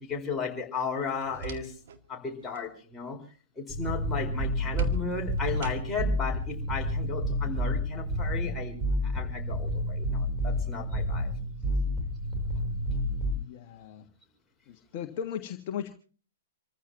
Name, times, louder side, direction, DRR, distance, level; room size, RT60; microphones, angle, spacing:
voice 1, 0.0-1.7 2.1-3.2 3.6-8.8 9.0-11.3, left 4 dB, 10° left, -1 dB, 4.8 m, -35 dB
sound 1, 1.0-2.0 2.3-2.7 4.8-6.2, right 4 dB, 55° right, 2.0 m, -38 dB
sound 2, 3.7-13.3, left 1 dB, 10° right, 3.8 m, -30 dB
voice 2, 13.3-14.1 14.7-15.9, left 8 dB, 40° left, 4 dB, 1.5 m, -37 dB
28.0 x 15.0 x 2.9 m, 0.41 s
figure-of-eight pair, 110°, 0 cm